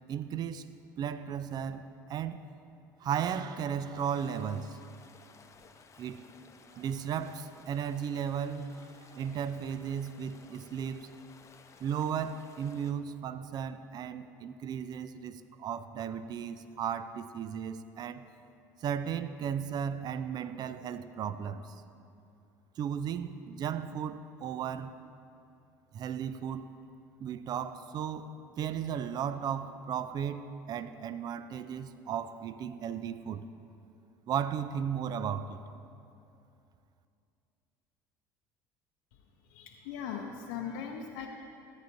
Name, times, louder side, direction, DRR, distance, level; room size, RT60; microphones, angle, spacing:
voice 1, 0.1-0.7 1.0-2.4 3.0-4.8 6.0-6.2 6.7-11.1 11.8-18.2 18.8-21.8 22.8-24.9 25.9-26.7 27.2-33.5 34.3-35.6, right 8 dB, 45° right, 12 dB, 0.4 m, -35 dB
sound 1, 3.9-12.9, left 5 dB, 30° left, 0.7 m, -57 dB
voice 2, 39.5-41.3, left 7 dB, 75° left, 1 dB, 0.6 m, -39 dB
14.0 x 9.4 x 2.6 m, 2.6 s
hypercardioid pair, 75°, 9 cm